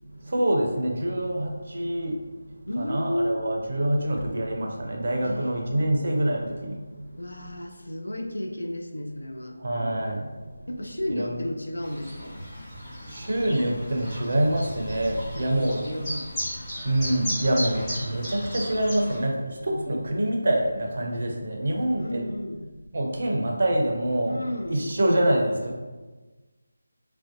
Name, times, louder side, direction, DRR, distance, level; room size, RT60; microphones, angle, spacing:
voice 1, 0.0-7.2 9.6-10.7 11.1-11.4 13.1-15.9 16.8-22.3 22.9-24.4 24.7-25.7, right 1 dB, 55° right, 1 dB, 0.4 m, -26 dB
voice 2, 2.7-3.4 5.2-5.5 7.2-9.6 10.7-12.5 15.4-16.7 19.7-20.1 22.0-22.7 24.3-25.0, left 1 dB, 70° left, 4 dB, 0.3 m, -33 dB
Chirp tweet, 11.8-19.2, equal, 20° left, 1.0 m, -35 dB
2.5 x 2.1 x 2.5 m, 1.3 s
figure-of-eight pair, 155°, 0 cm